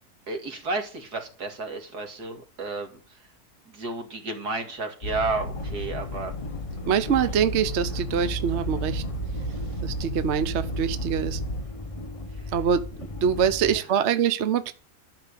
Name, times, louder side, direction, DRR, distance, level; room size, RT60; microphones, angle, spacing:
voice 1, 0.3-2.9 3.7-6.3 12.4-12.5 13.6-13.8, right 3 dB, 80° right, 2.8 m, -32 dB
sound 1, 5.0-11.6, right 1 dB, 60° left, 2.3 m, -33 dB
sound 2, 5.5-13.8, left 2 dB, 25° left, 0.8 m, -37 dB
voice 2, 6.9-9.0 9.8-11.4 12.5-14.7, right 8 dB, 50° right, 1.0 m, -24 dB
12.0 x 5.8 x 8.5 m
omnidirectional pair, 1.7 m